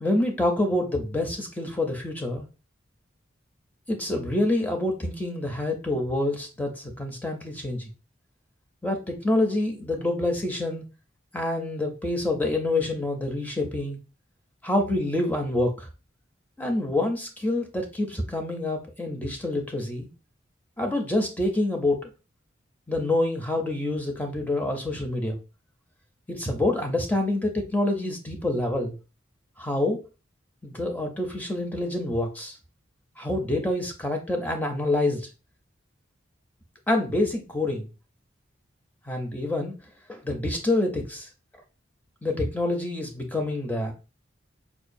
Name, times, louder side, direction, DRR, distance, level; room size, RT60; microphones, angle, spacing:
voice 1, 0.0-2.5 3.9-7.9 8.8-10.9 11.3-14.0 14.6-15.9 16.6-20.1 20.8-22.1 22.9-25.4 26.3-29.0 29.6-30.0 30.6-32.5 33.2-35.3 36.9-37.9 39.1-39.7 40.1-41.3 42.2-43.9, left 1 dB, 10° left, 3 dB, 0.5 m, -27 dB
4.6 x 2.3 x 2.5 m, 0.31 s
head